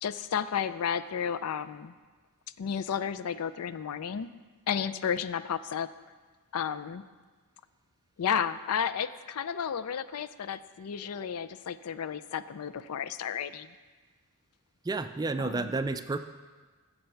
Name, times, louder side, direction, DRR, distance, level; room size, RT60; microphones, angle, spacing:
voice 1, 0.0-1.9 2.6-4.3 4.7-5.9 6.5-7.0 8.2-13.7 15.4-15.7, left 7 dB, 70° left, 14 dB, 0.4 m, -32 dB
voice 2, 14.8-16.2, right 3 dB, 15° right, 10 dB, 0.4 m, -31 dB
15.5 x 6.6 x 4.6 m, 1.4 s
head